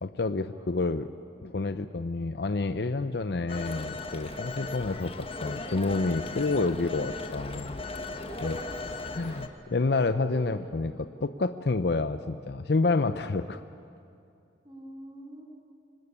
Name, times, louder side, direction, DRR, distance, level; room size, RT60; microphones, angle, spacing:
voice 1, 0.0-1.1 1.4-7.8 8.4-8.6 9.1-13.6, left 3 dB, 60° left, 10 dB, 0.6 m, -29 dB
Telephone, 3.5-9.5, left 2 dB, 30° left, 1.3 m, -37 dB
voice 2, 8.3-8.7 9.2-9.4 10.2-11.1 14.6-15.4, right 1 dB, 20° right, 0 dB, 3.7 m, -46 dB
25.0 x 17.5 x 9.9 m, 2.4 s
head